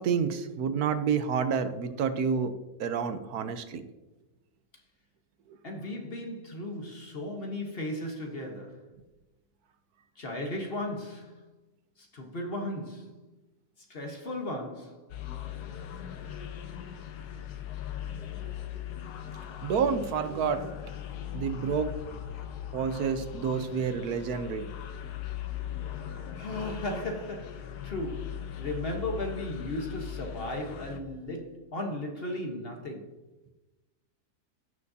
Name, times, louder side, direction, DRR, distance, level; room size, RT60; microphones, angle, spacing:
voice 1, 0.0-2.5 2.8-3.8 19.6-20.7 21.3-22.0 22.7-24.7, right 6 dB, 75° right, 1.2 m, -29 dB
voice 2, 5.6-8.9 10.2-11.4 12.0-13.2 13.8-15.1 26.2-33.1, left 1 dB, 40° left, 1.3 m, -36 dB
sound 1, 15.1-31.0, left 10 dB, 80° left, 1.4 m, -39 dB
15.5 x 6.5 x 2.8 m
omnidirectional pair, 1.7 m